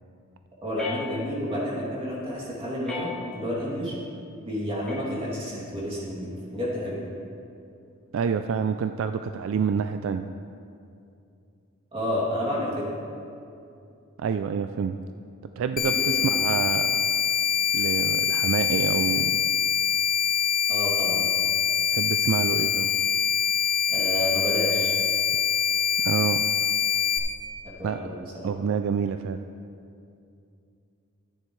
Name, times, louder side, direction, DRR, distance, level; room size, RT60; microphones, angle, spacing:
voice 1, 0.6-4.0 4.4-7.0 11.9-12.9 15.8-16.4 20.7-21.3 23.9-24.9 27.6-28.5, equal, 25° right, -6 dB, 2.7 m, -30 dB
sound 1, 0.8-1.7 2.8-3.7 4.9-5.7, left 5 dB, 5° left, 1.6 m, -39 dB
voice 2, 8.1-10.3 14.2-15.0 15.6-17.1 17.7-19.4 21.9-22.9 26.0-26.4 27.8-28.0 28.4-29.4, right 6 dB, 65° right, 9 dB, 0.3 m, -27 dB
sound 2, 15.8-27.2, left 8 dB, 45° left, 0.9 m, -24 dB
14.0 x 9.4 x 3.2 m, 2.6 s
head